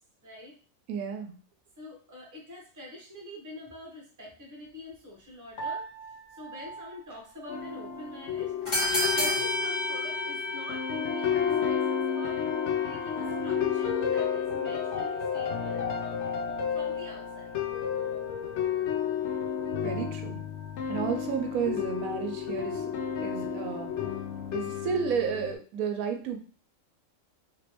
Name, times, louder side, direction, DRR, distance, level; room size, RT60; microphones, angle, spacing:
voice 1, 0.2-0.5 1.8-5.9 6.3-8.5 9.1-12.4 12.8-15.9 16.7-17.6, left 1 dB, 15° right, -2 dB, 0.9 m, -45 dB
voice 2, 0.9-1.4 19.8-20.4 20.9-22.9 23.2-24.0 24.5-26.4, right 7 dB, 85° right, 4 dB, 1.1 m, -32 dB
Piano, 5.6-8.1, right 4 dB, 80° left, 1.1 m, -41 dB
sound 1, 7.1-7.2 8.6-24.4, left 1 dB, 20° left, 1.4 m, -36 dB
sound 2, 7.5-25.6, left 8 dB, 65° left, 0.7 m, -31 dB
3.2 x 3.0 x 2.9 m, 0.40 s
omnidirectional pair, 1.5 m